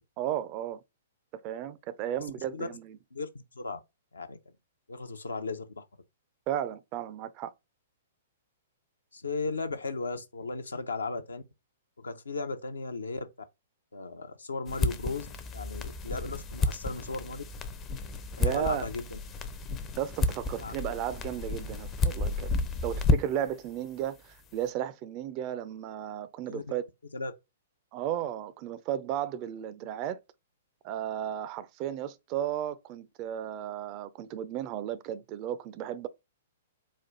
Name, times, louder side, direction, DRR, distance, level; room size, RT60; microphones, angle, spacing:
voice 1, 0.2-0.8 1.4-3.0 6.5-7.5 18.4-18.8 20.0-22.5 22.8-26.8 27.9-30.2 30.8-36.1, right 11 dB, 35° right, 0.4 m, -34 dB
voice 2, 4.1-4.5 4.9-5.9 9.1-11.4 12.0-13.3 13.9-15.3 15.5-17.4 18.4-19.2 20.6-20.7 26.4-26.6 27.1-27.3, left 3 dB, 75° left, 0.6 m, -36 dB
sound 1, 14.7-23.5, left 3 dB, 25° left, 0.5 m, -31 dB
4.3 x 2.4 x 3.7 m
figure-of-eight pair, 110°, 0 cm